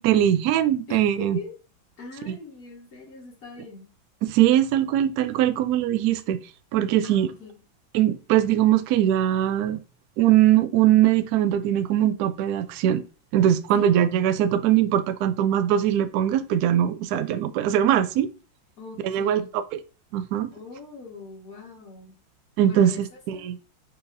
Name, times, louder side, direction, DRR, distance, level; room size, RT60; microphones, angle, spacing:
voice 1, 0.0-1.4 2.3-2.4 4.2-6.4 6.7-7.3 7.9-9.8 10.2-13.0 13.3-18.3 19.0-19.4 19.7-19.8 20.1-20.5 22.6-23.6, right 11 dB, 75° right, 0.8 m, -21 dB
voice 2, 0.9-1.5 2.0-3.9 7.0-7.5 13.7-14.0 18.8-19.5 20.5-22.1 22.7-23.5, left 4 dB, 50° left, 1.9 m, -41 dB
6.1 x 2.9 x 2.6 m
omnidirectional pair, 2.1 m